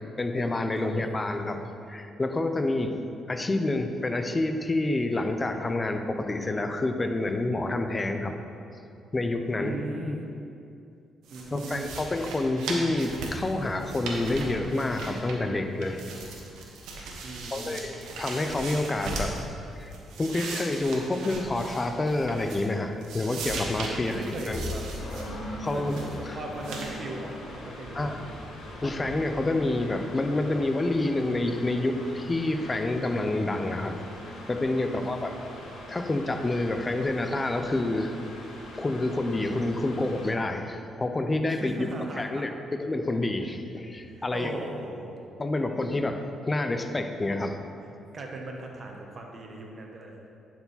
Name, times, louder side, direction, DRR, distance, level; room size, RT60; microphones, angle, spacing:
voice 1, 0.2-1.6 1.9-3.0 3.3-8.4 9.1-9.8 11.5-16.0 17.5-19.5 19.8-19.9 20.2-24.1 24.5-24.6 25.6-26.0 26.3-26.4 27.9-28.2 28.8-34.0 34.5-35.4 35.9-38.1 38.7-41.9 42.2-44.6 45.4-47.6, left 2 dB, 25° left, 6 dB, 0.6 m, -28 dB
voice 2, 9.6-10.2 11.3-11.9 17.2-17.7 23.9-24.8 25.7-28.3 34.7-35.1 41.5-42.4 44.0-45.1 48.1-50.2, right 2 dB, 45° right, 1 dB, 1.2 m, -38 dB
sound 1, 11.3-15.6 15.8-19.4 19.8-22.7 23.0-25.2 25.7-26.1 26.6-26.9, right 3 dB, 85° right, 1.1 m, -38 dB
sound 2, 24.5-30.0, left 1 dB, 50° left, 1.4 m, -40 dB
Mechanical fan, 24.9-40.3, left 1 dB, 85° left, 1.5 m, -43 dB
10.5 x 4.8 x 4.1 m, 2.6 s
cardioid pair, 90°, 0 cm